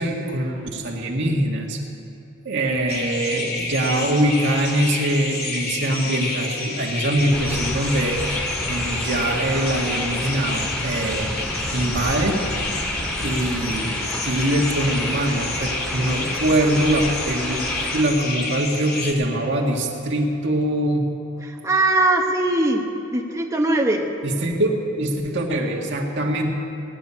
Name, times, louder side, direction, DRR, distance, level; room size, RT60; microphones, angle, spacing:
voice 1, 0.0-1.8 2.4-8.2 8.6-11.3 11.7-12.5 13.2-21.1 24.2-26.5, right 1 dB, 60° right, 1 dB, 1.9 m, -23 dB
sound 1, 2.9-19.1, left 3 dB, 50° left, 2.3 m, -29 dB
sound 2, 7.3-18.0, equal, 5° left, 1.7 m, -31 dB
voice 2, 21.4-24.1, right 2 dB, 15° right, 0 dB, 0.9 m, -21 dB
18.0 x 7.2 x 9.8 m, 2.8 s
head